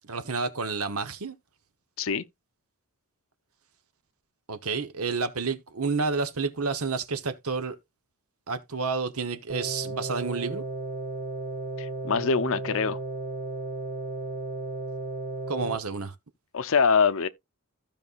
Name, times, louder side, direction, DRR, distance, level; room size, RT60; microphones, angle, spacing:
voice 1, 0.0-1.3 4.5-7.8 8.5-10.6 15.5-16.1, right 4 dB, 70° right, 1.1 m, -30 dB
sound 1, 9.5-15.8, right 2 dB, 45° right, 1.2 m, -34 dB
voice 2, 11.8-13.0 16.5-17.3, left 5 dB, 65° left, 0.7 m, -24 dB
15.0 x 5.4 x 2.5 m
head